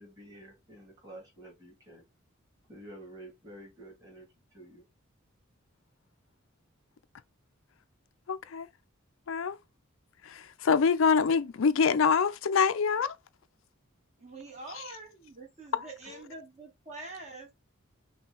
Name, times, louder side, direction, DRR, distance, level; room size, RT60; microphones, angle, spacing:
voice 1, 0.0-2.0 2.7-4.3 4.5-4.8, right 1 dB, 20° right, 2.5 m, -49 dB
voice 2, 8.3-8.7 9.3-9.6 10.3-13.1 15.7-15.8, left 6 dB, 75° left, 0.5 m, -25 dB
voice 3, 14.2-17.5, right 3 dB, 35° right, 1.4 m, -45 dB
5.9 x 2.3 x 3.6 m
head